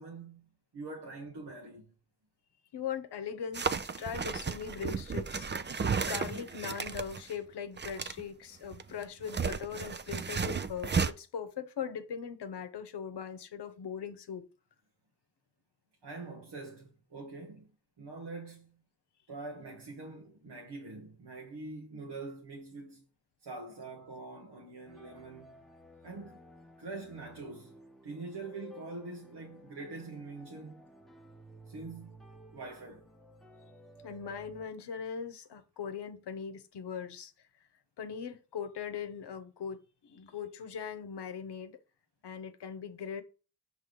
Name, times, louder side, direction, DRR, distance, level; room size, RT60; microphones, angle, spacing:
voice 1, 0.0-1.9 16.0-17.7 18.0-18.8 19.3-23.0 23.4-25.6 26.0-26.4 26.8-27.8 28.0-30.8 31.7-32.2 32.5-33.1, right 3 dB, 85° right, 1.1 m, -44 dB
voice 2, 2.7-5.5 6.1-14.5 34.0-37.3 38.0-41.8 42.2-43.2, left 7 dB, 85° left, 0.8 m, -40 dB
sound 1, 3.5-7.3 7.8-8.2 8.6-11.1, right 5 dB, 30° right, 0.5 m, -33 dB
sound 2, 24.9-34.7, equal, ahead, 0.9 m, -55 dB
6.1 x 3.2 x 5.2 m
cardioid pair, 60°, 39 cm